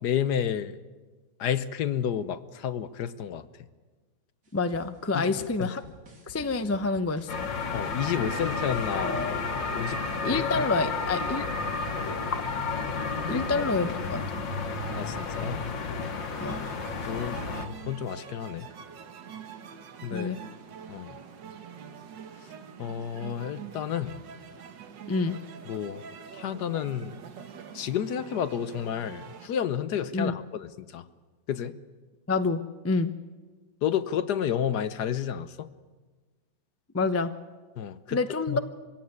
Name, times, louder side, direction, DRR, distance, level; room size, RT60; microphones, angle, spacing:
voice 1, 0.0-0.8 1.4-3.5 5.1-5.3 5.6-5.7 7.7-9.4 9.7-10.4 13.3-13.4 15.0-15.6 17.1-18.7 20.0-20.4 20.9-21.2 22.8-24.2 25.7-26.0 26.3-27.2 27.7-31.0 31.5-31.7 33.8-35.7 37.8-38.2 38.5-38.6, left 9 dB, 65° left, 13 dB, 1.3 m, -31 dB
voice 2, 4.5-5.8 6.3-7.5 10.2-11.5 13.3-14.2 16.4-16.6 20.1-20.4 25.1-25.4 30.1-30.3 32.3-33.1 36.9-37.3 38.1-38.6, left 3 dB, 15° left, 8 dB, 0.4 m, -27 dB
sound 1, 4.5-10.9, right 3 dB, 55° right, 3.1 m, -52 dB
sound 2, 7.3-17.7, left 4 dB, 90° left, 2.1 m, -31 dB
sound 3, 16.5-29.5, right 7 dB, 80° right, 1.9 m, -45 dB
24.0 x 16.5 x 9.5 m, 1.4 s
omnidirectional pair, 2.0 m